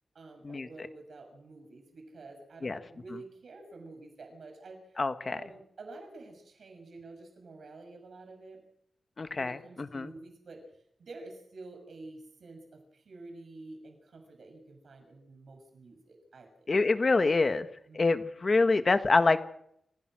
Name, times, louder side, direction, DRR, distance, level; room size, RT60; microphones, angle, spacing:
voice 1, 0.1-5.0 5.3-8.6 9.3-10.7 11.0-16.7 17.9-18.2, right 3 dB, 60° right, 4 dB, 6.5 m, -49 dB
voice 2, 5.0-5.4 9.2-10.1 16.7-17.7 17.9-19.4, left 3 dB, 35° left, 9 dB, 1.5 m, -26 dB
28.5 x 16.0 x 6.3 m, 0.71 s
wide cardioid pair, 165°, 0 cm